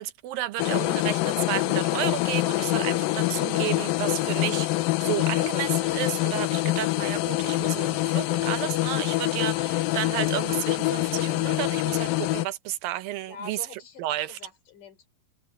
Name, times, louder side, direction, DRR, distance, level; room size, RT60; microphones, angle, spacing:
voice 1, 0.0-13.6 14.0-14.4, right 14 dB, 80° right, 2.6 m, -32 dB
sound 1, 0.6-12.5, left 18 dB, 90° left, 2.5 m, -25 dB
voice 2, 13.3-15.1, left 5 dB, 65° left, 5.4 m, -44 dB
omnidirectional pair, 4.0 m